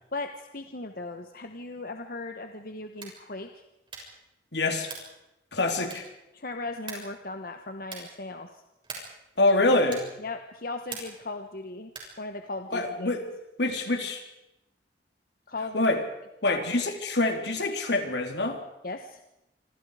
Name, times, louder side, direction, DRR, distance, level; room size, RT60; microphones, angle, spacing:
voice 1, 0.1-3.6 5.8-5.9 6.3-8.6 10.2-11.9 12.2-13.2 15.5-15.8 16.4-16.6 18.8-19.2, left 2 dB, 55° left, 6 dB, 1.3 m, -37 dB
sound 1, 2.9-3.3 3.9-4.2 4.8-5.2 5.9-6.3 6.9-7.2 7.8-8.2 8.8-9.2 9.9-10.2 10.9-11.3 11.9-12.2, right 4 dB, 30° right, 6.9 m, -42 dB
voice 2, 4.5-4.9 5.5-6.0 9.4-10.1 12.7-13.3 13.6-14.2 15.7-16.0 16.4-18.6, left 2 dB, 80° left, 4 dB, 3.6 m, -25 dB
27.0 x 26.0 x 5.0 m, 0.91 s
head